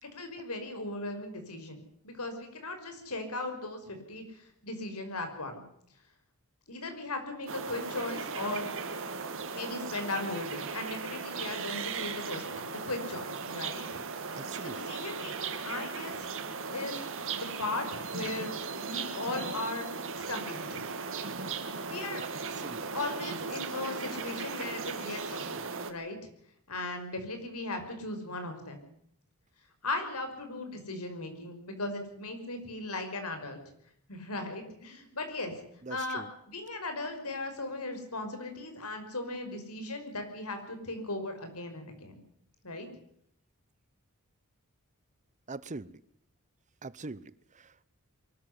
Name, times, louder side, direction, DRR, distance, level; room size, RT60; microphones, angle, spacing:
voice 1, 0.0-5.6 6.7-8.7 9.5-13.8 14.3-16.3 16.7-17.0 17.3-18.5 18.8-19.9 20.3-20.9 21.9-22.2 22.9-26.2 26.7-28.8 29.8-33.6 34.1-35.5 35.9-42.2 42.6-42.9, left 2 dB, 80° left, 7 dB, 5.7 m, -37 dB
sound 1, 7.5-25.9, right 5 dB, 65° right, 2.5 m, -37 dB
voice 2, 14.4-14.8 22.2-22.3 22.5-22.8 35.8-36.3 45.5-46.0 46.8-47.8, right 3 dB, 35° right, 19 dB, 0.8 m, -43 dB
23.5 x 13.5 x 9.7 m, 0.72 s
head